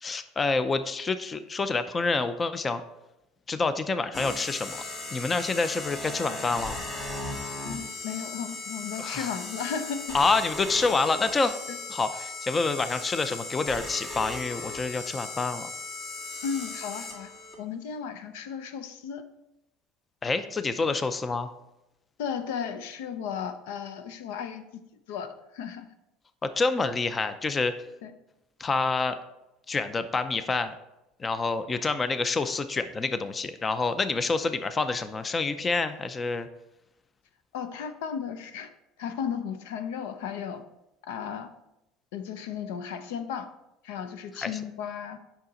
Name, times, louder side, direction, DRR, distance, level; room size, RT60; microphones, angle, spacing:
voice 1, 0.0-2.8 3.5-4.8 5.1-6.8 9.0-9.3 10.1-11.5 11.9-15.7 20.2-21.5 26.4-27.7 28.6-29.2 29.7-30.7 31.2-36.5 44.4-44.5, left 3 dB, 25° left, 11 dB, 0.5 m, -27 dB
sound 1, 4.1-17.5, left 2 dB, 40° left, 2.2 m, -37 dB
voice 2, 7.6-10.2 11.7-11.8 16.4-17.3 17.6-19.3 22.2-24.8 25.1-25.9 28.0-28.1 37.5-38.7 39.0-40.6 41.0-41.5 42.1-43.5 43.8-45.2, left 7 dB, 90° left, 10 dB, 0.6 m, -35 dB
8.4 x 5.8 x 3.9 m, 0.92 s
supercardioid pair, 115°, 0 cm